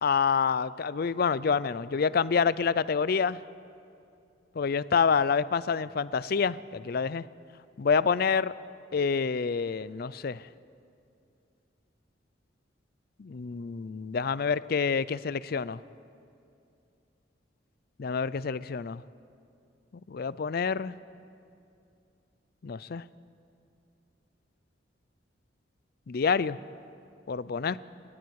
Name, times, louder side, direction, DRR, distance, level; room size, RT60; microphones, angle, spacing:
voice 1, 0.0-3.4 4.6-7.2 7.8-8.5 8.9-10.4 13.2-15.8 18.0-19.0 20.1-20.9 22.6-23.0 26.1-26.6 27.3-27.8, left 5 dB, 55° left, 18 dB, 0.4 m, -27 dB
30.0 x 18.5 x 4.8 m, 2.6 s
head